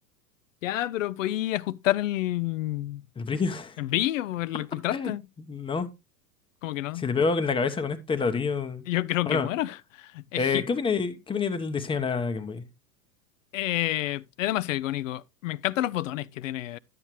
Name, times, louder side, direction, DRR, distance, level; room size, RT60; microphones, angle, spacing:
voice 1, 0.6-3.0 3.8-5.3 6.6-7.1 8.9-10.6 13.5-16.8, left 15 dB, 55° left, 0.5 m, -29 dB
voice 2, 3.2-3.8 4.9-5.1 5.5-5.9 7.0-8.8 9.3-9.5 10.4-12.6, left 5 dB, 10° left, 0.7 m, -27 dB
11.0 x 7.7 x 3.0 m
figure-of-eight pair, 90°, 47 cm